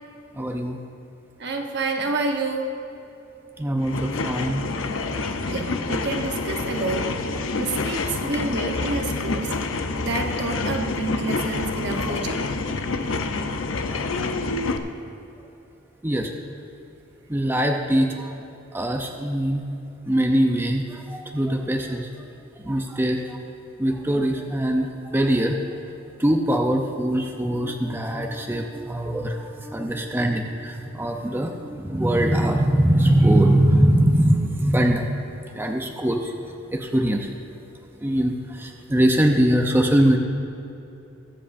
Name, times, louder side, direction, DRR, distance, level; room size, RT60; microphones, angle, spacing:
voice 1, 0.4-0.8 3.6-4.7 11.9-12.1 16.0-16.3 17.3-18.1 18.7-19.6 20.1-22.1 22.6-23.4 23.8-25.6 26.2-35.1 35.5-36.3 36.7-37.3 38.0-40.2, right 1 dB, 10° right, 2 dB, 0.6 m, -22 dB
voice 2, 1.4-2.7 5.5-7.1 7.6-9.5 10.0-12.4, right 3 dB, 60° right, 3 dB, 1.0 m, -28 dB
sound 1, 3.8-14.8, left 3 dB, 80° left, 0.7 m, -27 dB
22.5 x 7.6 x 2.6 m, 2.9 s
head